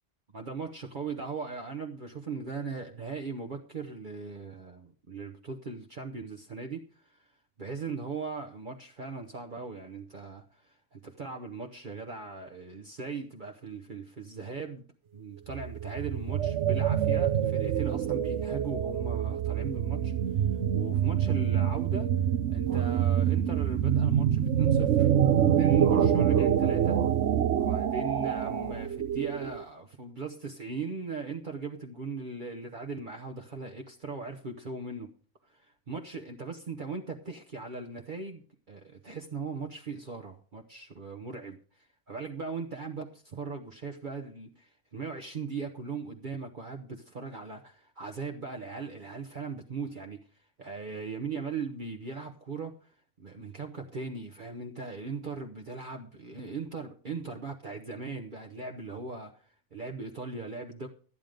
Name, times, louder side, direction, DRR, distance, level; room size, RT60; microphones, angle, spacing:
voice 1, 0.3-7.3 7.6-14.9 15.1-20.5 20.7-22.1 22.5-25.1 25.5-27.0 27.6-35.1 35.4-60.9, right 4 dB, 45° right, 2 dB, 1.1 m, -39 dB
sound 1, 15.5-29.6, right 9 dB, 75° right, 1.1 m, -26 dB
14.0 x 9.3 x 5.1 m, 0.43 s
omnidirectional pair, 1.2 m